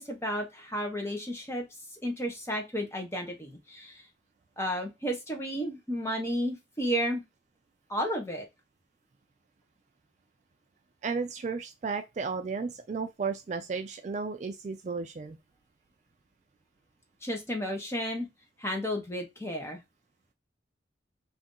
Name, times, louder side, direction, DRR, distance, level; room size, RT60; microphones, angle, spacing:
voice 1, 0.0-1.6 2.0-4.0 4.6-7.2 7.9-8.4 17.2-18.3 18.6-19.8, equal, 15° left, 0.8 m, -32 dB
voice 2, 11.0-15.4, right 4 dB, 40° right, 0.3 m, -34 dB
2.7 x 2.5 x 3.6 m
head